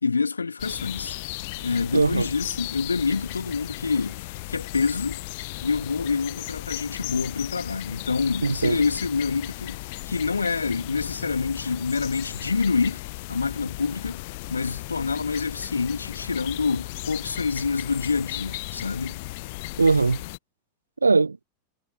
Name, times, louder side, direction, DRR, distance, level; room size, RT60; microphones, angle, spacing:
voice 1, 0.0-1.2 1.6-4.2 4.5-5.2 5.6-13.0 13.3-14.2 14.5-19.2, left 4 dB, 75° left, 2.7 m, -27 dB
sound 1, 0.6-20.4, left 22 dB, 50° left, 0.9 m, -36 dB
voice 2, 1.9-2.3 8.4-8.8 19.8-20.2 21.0-21.4, right 4 dB, 80° right, 0.8 m, -20 dB
figure-of-eight pair, 90°, 0 cm